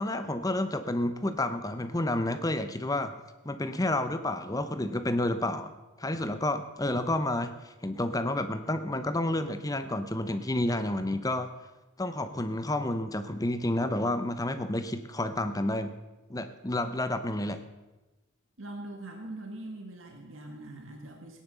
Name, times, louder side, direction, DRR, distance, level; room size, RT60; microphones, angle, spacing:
voice 1, 0.0-3.2 3.4-5.7 6.0-11.5 12.0-15.9 16.3-17.6, left 1 dB, 15° left, 10 dB, 0.8 m, -30 dB
voice 2, 18.6-21.4, right 1 dB, 70° right, 2 dB, 1.9 m, -42 dB
17.0 x 10.5 x 6.9 m, 1.1 s
head